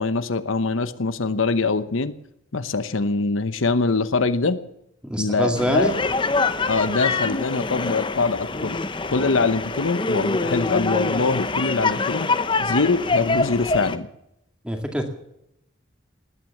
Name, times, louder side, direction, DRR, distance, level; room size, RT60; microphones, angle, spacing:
voice 1, 0.0-2.1 2.5-4.6 5.2-5.9 6.7-8.8 9.1-12.3 12.6-14.1, left 3 dB, 80° left, 12 dB, 0.9 m, -23 dB
voice 2, 5.0-6.0 14.6-15.1, equal, 5° right, 3 dB, 2.1 m, -24 dB
sound 1, 5.5-14.0, left 3 dB, 25° left, 0.7 m, -25 dB
19.0 x 9.5 x 7.3 m, 0.81 s
head